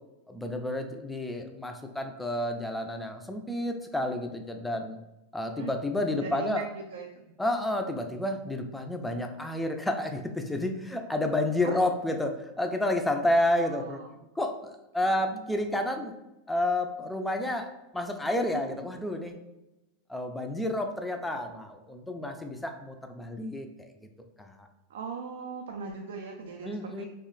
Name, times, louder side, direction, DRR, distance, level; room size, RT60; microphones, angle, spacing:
voice 1, 0.3-5.0 5.3-6.7 7.4-14.0 14.4-16.1 16.5-17.7 17.9-19.3 20.1-23.9 24.4-24.7 26.6-27.1, left 1 dB, 5° left, 4 dB, 0.3 m, -30 dB
voice 2, 6.2-7.3 11.6-11.8 13.5-14.1 15.1-15.4 24.9-27.1, right 5 dB, 85° right, 2 dB, 0.3 m, -40 dB
2.4 x 2.1 x 3.8 m, 0.97 s
supercardioid pair, 130°, 0 cm